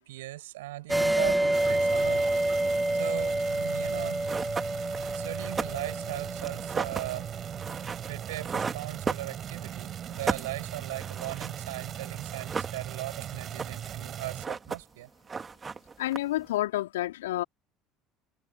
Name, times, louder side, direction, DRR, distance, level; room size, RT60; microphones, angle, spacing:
voice 1, 0.0-2.3 2.9-4.3 5.1-7.4 8.1-15.1, right 17 dB, 75° right, 7.2 m, -38 dB
sound 1, 0.9-8.0, right 1 dB, 10° right, 2.7 m, -29 dB
sound 2, 1.5-14.5, right 10 dB, 45° right, 6.7 m, -39 dB
sound 3, 3.9-4.0 4.2-9.7 10.0-11.9 12.2-13.1 13.4-14.0 14.3-15.0 15.3-16.5, right 5 dB, 25° right, 3.2 m, -35 dB
voice 2, 16.0-17.4, left 15 dB, 75° left, 4.1 m, -29 dB
figure-of-eight pair, 65°, 0 cm